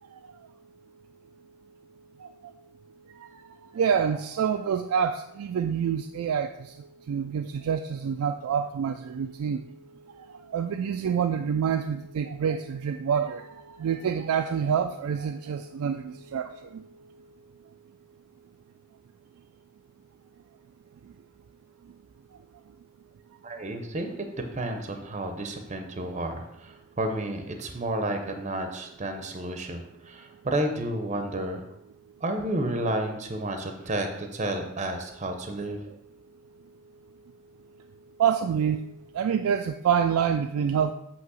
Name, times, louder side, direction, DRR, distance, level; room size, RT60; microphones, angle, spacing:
voice 1, 3.7-9.7 10.2-16.8 38.2-38.8 39.1-40.9, right 7 dB, 85° right, 8 dB, 0.3 m, -27 dB
voice 2, 23.4-24.1 24.5-31.6 32.2-35.8, right 1 dB, 35° right, 5 dB, 0.6 m, -31 dB
8.2 x 2.9 x 6.2 m, 0.83 s
head